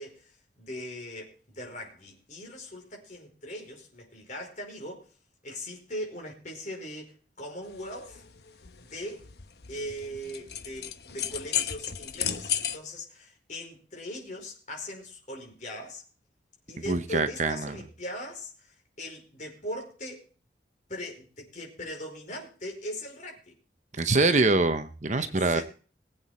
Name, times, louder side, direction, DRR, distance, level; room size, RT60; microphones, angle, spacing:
voice 1, 0.0-5.1 5.4-8.2 8.8-9.2 9.7-16.0 16.7-20.2 20.9-23.5 25.2-25.6, equal, 45° left, 1 dB, 5.0 m, -40 dB
sound 1, 7.6-12.8, left 9 dB, 60° left, 1.0 m, -34 dB
voice 2, 16.9-17.8 23.9-25.6, right 3 dB, 40° right, 10 dB, 0.9 m, -24 dB
21.5 x 8.4 x 4.4 m, 0.39 s
head